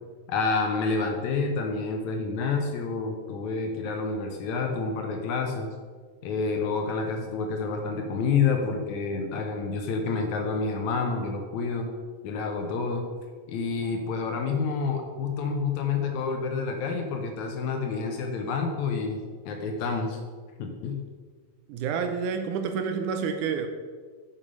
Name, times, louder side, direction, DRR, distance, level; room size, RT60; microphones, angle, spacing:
voice 1, 0.3-5.7 6.2-11.9 12.2-13.0 13.5-19.2 19.5-20.2 20.6-21.0, left 4 dB, 70° left, 3 dB, 2.0 m, -28 dB
voice 2, 21.7-23.7, right 6 dB, 80° right, 7 dB, 2.0 m, -29 dB
7.2 x 6.9 x 5.3 m, 1.6 s
omnidirectional pair, 3.8 m